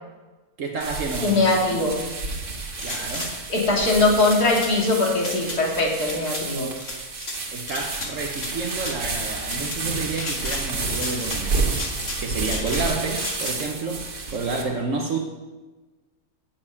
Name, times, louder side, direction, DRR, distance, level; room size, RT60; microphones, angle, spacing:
voice 1, 0.6-1.9 2.8-3.4 7.5-11.7 12.0-15.2, right 3 dB, 60° right, 2 dB, 1.2 m, -30 dB
sound 1, 0.8-14.6, right 3 dB, 85° right, 2.0 m, -30 dB
voice 2, 1.2-2.0 3.5-6.7, left 2 dB, 85° left, -2 dB, 2.7 m, -21 dB
sound 2, 2.7-3.3 4.2-4.7 5.2-5.6 6.0-6.4 6.8-7.4 7.7-8.5 8.7-9.0 9.4-9.8 10.1-10.6 10.9-11.4 11.7-12.8 13.1-13.6, left 2 dB, 45° left, 1.9 m, -33 dB
7.6 x 7.1 x 8.3 m, 1.2 s
omnidirectional pair, 1.6 m